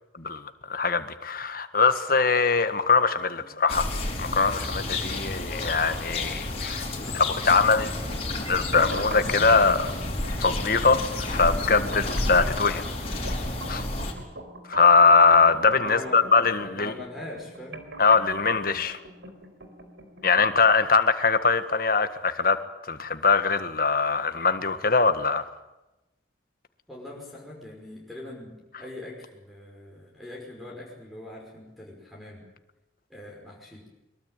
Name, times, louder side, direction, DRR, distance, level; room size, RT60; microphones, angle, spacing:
voice 1, 0.7-3.9 4.2-6.9 7.1-7.9 8.5-10.1 10.4-12.8 13.2-13.4 13.7-13.8 14.7-16.9 18.0-19.0 20.2-22.6 22.9-25.4, left 4 dB, 50° left, 1.7 m, -22 dB
sound 1, 3.7-14.1, left 2 dB, 35° left, 5.0 m, -31 dB
voice 2, 7.0-7.6 15.8-17.8 26.9-32.4 33.1-33.8, left 1 dB, ahead, 5.7 m, -42 dB
sound 2, 8.7-20.7, right 1 dB, 75° right, 4.5 m, -42 dB
23.0 x 22.5 x 9.1 m
head